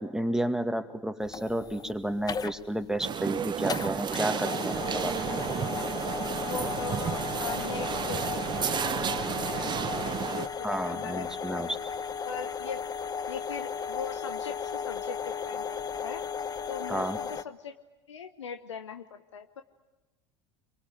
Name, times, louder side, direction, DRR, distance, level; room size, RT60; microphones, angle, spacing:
voice 1, 0.0-5.2 10.6-11.8 16.9-17.2, right 1 dB, 5° right, 7 dB, 2.0 m, -31 dB
sound 1, 1.2-17.4, left 6 dB, 25° left, 0.9 m, -35 dB
sound 2, 3.0-10.5, right 8 dB, 30° right, 1.1 m, -32 dB
sound 3, 4.7-10.3, right 10 dB, 65° right, 1.5 m, -43 dB
voice 2, 6.4-11.6 12.2-12.9 13.3-16.2 16.7-17.7 18.1-19.6, left 7 dB, 80° left, 9 dB, 1.1 m, -40 dB
27.0 x 24.0 x 9.2 m, 1.1 s
hypercardioid pair, 75°, 15 cm